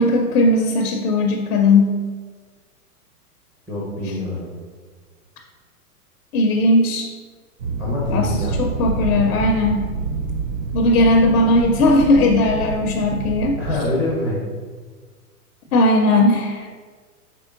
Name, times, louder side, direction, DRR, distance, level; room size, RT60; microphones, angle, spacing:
voice 1, 0.0-2.0 6.3-7.1 8.1-8.3 8.6-9.9 10.7-13.5 15.7-16.7, left 2 dB, 70° left, 2 dB, 0.6 m, -17 dB
voice 2, 3.7-4.5 7.8-8.9 13.6-14.5 15.7-15.8, left 1 dB, 5° right, -6 dB, 0.6 m, -25 dB
sound 1, 7.6-13.8, right 4 dB, 60° right, 0.6 m, -27 dB
4.4 x 3.3 x 2.5 m, 1.5 s
hypercardioid pair, 120°, 47 cm